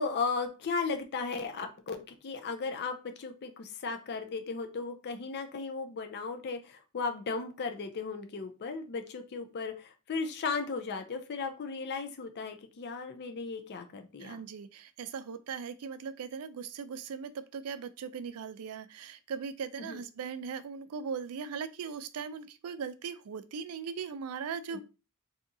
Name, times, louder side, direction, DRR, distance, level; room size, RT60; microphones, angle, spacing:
voice 1, 0.0-14.4 19.8-20.0, left 4 dB, 50° left, 6 dB, 0.4 m, -36 dB
voice 2, 14.2-24.8, right 6 dB, 75° right, 13 dB, 0.4 m, -39 dB
3.5 x 2.7 x 2.6 m, 0.32 s
head